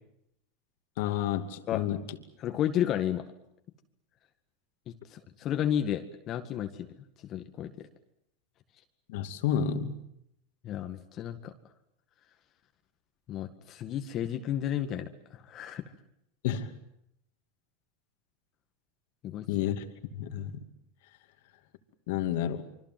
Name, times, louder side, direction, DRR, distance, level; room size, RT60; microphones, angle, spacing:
voice 1, 1.0-2.0 9.1-10.0 16.4-16.7 19.5-19.8 20.1-20.6 22.1-22.7, left 9 dB, 70° left, 7 dB, 2.6 m, -30 dB
voice 2, 2.4-3.2 4.9-6.9 7.2-7.9 10.6-11.5 13.3-15.8 19.2-19.5, left 10 dB, 40° left, 6 dB, 1.9 m, -32 dB
26.0 x 24.5 x 7.8 m, 0.78 s
supercardioid pair, 120°, 0 cm